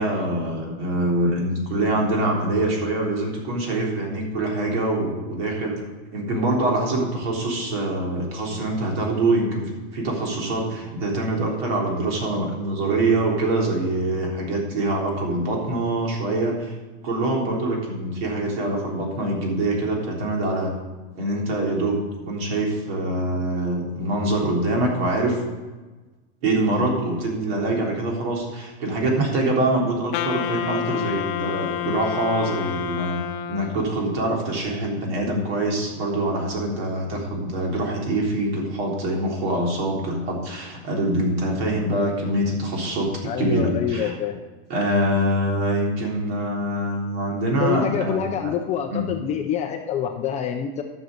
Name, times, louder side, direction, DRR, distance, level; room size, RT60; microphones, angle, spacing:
voice 1, 0.0-5.8 6.1-16.7 17.0-20.7 21.2-25.4 26.4-33.2 33.5-43.1 43.4-44.2 44.7-48.5 48.9-49.1, right 1 dB, 60° right, -1 dB, 3.7 m, -24 dB
Wind instrument woodwind instrument, 30.1-34.0, left 11 dB, 50° left, 0.8 m, -29 dB
voice 2, 43.2-44.5 47.6-50.8, left 9 dB, 20° left, 4 dB, 0.5 m, -26 dB
12.0 x 6.5 x 6.5 m, 1.2 s
supercardioid pair, 155°, 35 cm